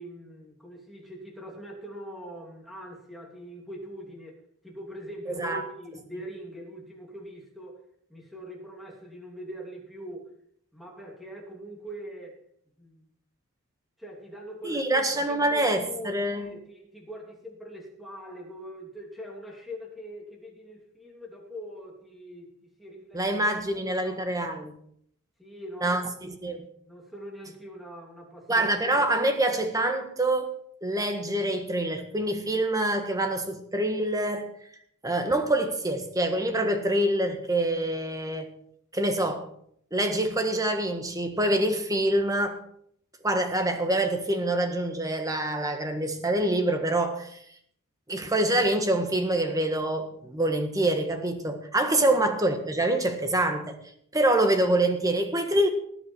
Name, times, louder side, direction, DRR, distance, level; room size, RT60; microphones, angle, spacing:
voice 1, 0.0-7.8 8.1-10.3 10.7-12.4 12.8-13.1 14.0-23.4 23.7-24.3 25.4-26.1 26.9-28.7 52.0-52.2, equal, ahead, -1 dB, 3.0 m, -42 dB
voice 2, 5.3-5.6 14.6-16.5 23.1-24.8 25.8-26.7 28.5-30.5 30.8-34.5 35.0-38.5 38.9-39.5 39.9-42.6 43.2-47.4 48.1-53.8 54.1-55.7, right 1 dB, 15° right, 6 dB, 1.6 m, -26 dB
19.0 x 8.6 x 4.6 m, 0.68 s
head